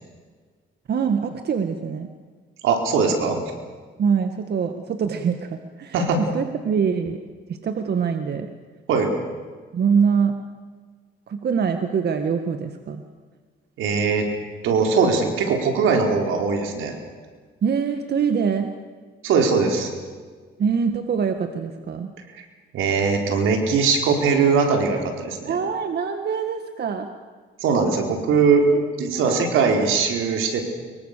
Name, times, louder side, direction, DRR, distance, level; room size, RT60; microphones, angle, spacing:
voice 1, 0.9-2.1 4.0-7.2 7.5-8.5 9.7-10.4 11.3-13.0 17.6-18.7 20.6-22.1 25.4-27.1 28.7-28.8 29.1-29.4, right 6 dB, 55° right, 6 dB, 1.8 m, -24 dB
voice 2, 2.6-3.4 5.9-6.2 8.9-9.1 13.8-14.3 14.6-16.9 19.2-19.9 22.7-25.6 27.6-28.7 29.0-30.6, right 5 dB, 85° right, 3 dB, 4.3 m, -20 dB
24.5 x 23.0 x 6.8 m, 1.5 s
cardioid pair, 90°, 20 cm